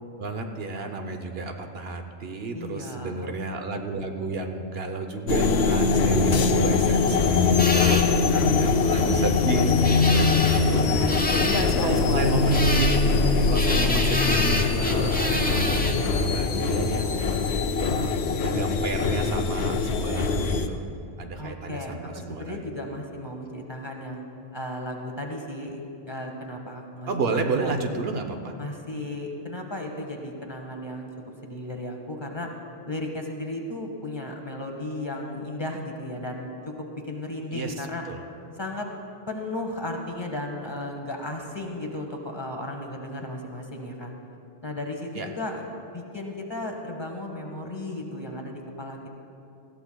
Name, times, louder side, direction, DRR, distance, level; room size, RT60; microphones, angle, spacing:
voice 1, 0.2-7.4 7.7-8.0 8.5-10.5 11.6-13.1 13.5-17.3 17.8-18.1 18.4-20.8 21.2-22.8 27.1-28.5 37.5-38.2 45.1-45.3, right 3 dB, 70° right, 5 dB, 1.1 m, -31 dB
voice 2, 2.5-3.3 7.7-8.0 8.3-8.8 10.0-11.9 13.3-13.6 21.4-24.3 24.5-27.8 28.6-31.1 31.4-32.5 32.9-38.0 38.6-38.9 39.3-44.1 44.6-49.1, left 1 dB, 25° left, 1 dB, 1.2 m, -35 dB
sound 1, 5.3-20.7, left 4 dB, 85° left, 1.0 m, -22 dB
sound 2, 7.6-16.3, left 1 dB, 10° left, 0.8 m, -31 dB
19.5 x 14.0 x 2.3 m, 2.6 s
omnidirectional pair, 1.1 m